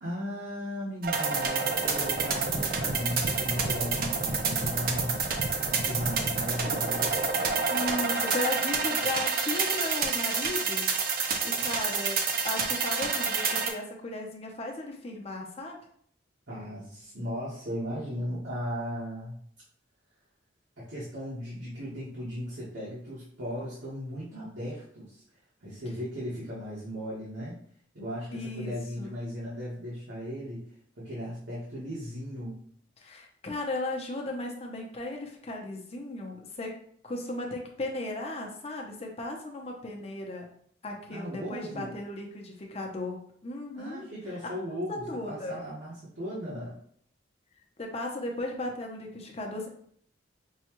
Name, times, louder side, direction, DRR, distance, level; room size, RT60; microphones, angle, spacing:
voice 1, 0.0-5.2 5.4-7.1 16.5-19.3 20.8-25.2 25.6-27.6 27.9-30.6 31.0-32.6 41.1-42.0 43.7-46.8, equal, 80° right, -8 dB, 1.3 m, -37 dB
sound 1, 1.0-13.7, right 4 dB, 50° right, 0.5 m, -28 dB
voice 2, 7.5-10.9 11.4-15.8 28.3-29.1 33.0-36.7 37.0-40.4 40.8-43.2 43.4-44.1 44.4-44.5 44.9-45.6 47.8-49.7, left 2 dB, 35° left, 1 dB, 0.7 m, -36 dB
5.4 x 2.3 x 3.0 m, 0.63 s
head